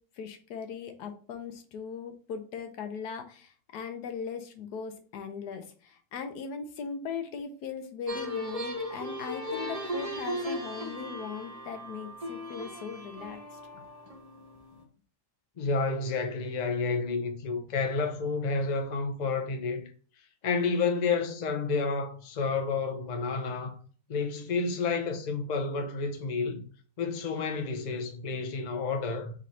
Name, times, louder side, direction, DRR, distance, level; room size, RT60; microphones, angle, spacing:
voice 1, 0.2-13.8, left 6 dB, 80° left, 1.3 m, -39 dB
sound 1, 8.1-14.8, equal, 35° right, 0.6 m, -37 dB
voice 2, 15.6-19.9 20.4-23.8 24.1-26.6 27.0-29.3, left 4 dB, 60° left, 0.4 m, -30 dB
4.0 x 3.1 x 4.1 m
omnidirectional pair, 1.7 m